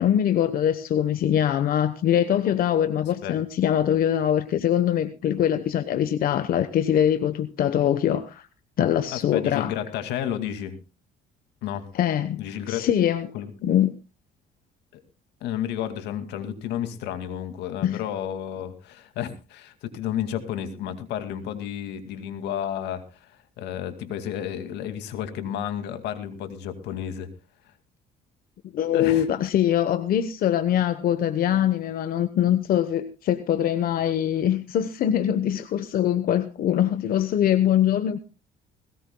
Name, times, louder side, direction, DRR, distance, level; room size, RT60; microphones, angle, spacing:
voice 1, 0.0-8.5 8.8-9.7 11.9-13.3 13.6-13.9 17.8-18.0 28.7-38.2, left 10 dB, 60° left, 1.0 m, -23 dB
voice 2, 9.1-10.8 11.6-11.9 12.4-12.8 13.3-13.5 14.9-15.0 15.4-23.3 23.6-27.3 28.9-29.3, left 10 dB, 85° left, 2.3 m, -31 dB
20.0 x 18.0 x 2.3 m
cardioid pair, 110°, 17 cm